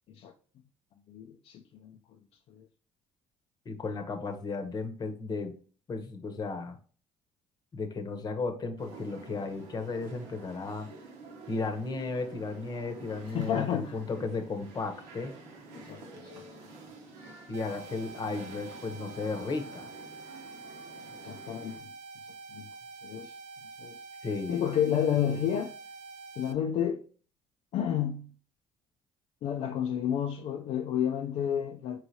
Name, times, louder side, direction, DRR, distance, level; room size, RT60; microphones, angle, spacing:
voice 1, 1.1-2.0 2.5-2.7 13.3-14.0 15.7-16.4 21.2-21.9 22.5-22.7 23.0-23.3 23.8-24.0 24.5-25.7 26.4-27.0 27.7-28.3 29.4-32.0, left 9 dB, 60° left, 0.4 m, -31 dB
voice 2, 3.7-5.5 5.9-6.8 7.7-10.9 11.5-15.3 17.5-19.9 24.2-24.6, left 3 dB, 35° left, 0.8 m, -34 dB
sound 1, 8.8-21.8, right 2 dB, 90° right, 0.9 m, -49 dB
sound 2, 17.5-26.5, right 3 dB, 75° right, 0.4 m, -47 dB
4.5 x 3.1 x 2.7 m
cardioid pair, 90°, 12 cm